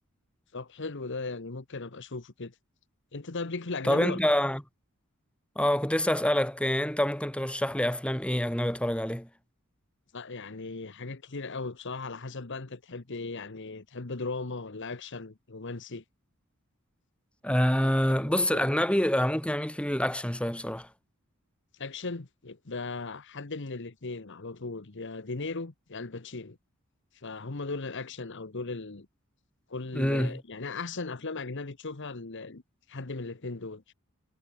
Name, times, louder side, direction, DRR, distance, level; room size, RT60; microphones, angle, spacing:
voice 1, 0.5-2.5 3.1-4.2 10.1-16.0 17.8-18.7 21.8-26.6 27.1-29.1 29.7-32.6 32.9-33.9, left 3 dB, 55° left, 1.2 m, -37 dB
voice 2, 3.9-4.6 5.6-9.3 17.4-20.9 29.9-30.4, left 1 dB, 5° left, 2.2 m, -26 dB
head